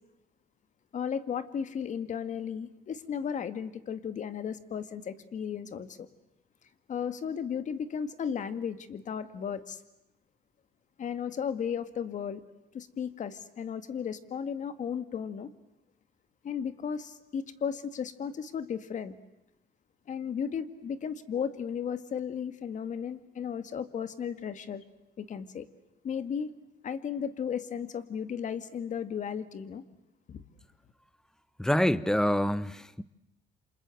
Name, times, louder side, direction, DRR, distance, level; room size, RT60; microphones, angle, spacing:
voice 1, 0.9-6.1 6.9-9.8 11.0-12.4 12.7-15.5 16.4-19.1 20.1-24.8 25.2-25.7 26.0-26.5 26.8-29.8 30.3-30.4, left 7 dB, 45° left, 2.0 m, -35 dB
voice 2, 31.6-33.0, equal, 5° left, 1.0 m, -26 dB
28.5 x 26.5 x 7.9 m
cardioid pair, 110°, 17 cm